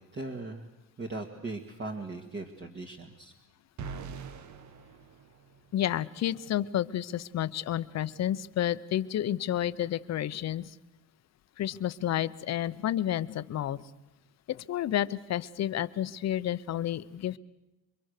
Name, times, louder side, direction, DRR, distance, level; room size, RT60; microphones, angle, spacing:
voice 1, 0.1-0.7 1.0-3.3, right 2 dB, 35° right, 2 dB, 2.2 m, -39 dB
sound 1, 3.8-5.9, right 5 dB, 55° right, 1.5 m, -43 dB
voice 2, 5.7-10.7 11.6-13.8 14.5-17.4, left 12 dB, 50° left, 15 dB, 0.9 m, -30 dB
28.0 x 23.5 x 6.7 m, 1.0 s
cardioid pair, 120°, 34 cm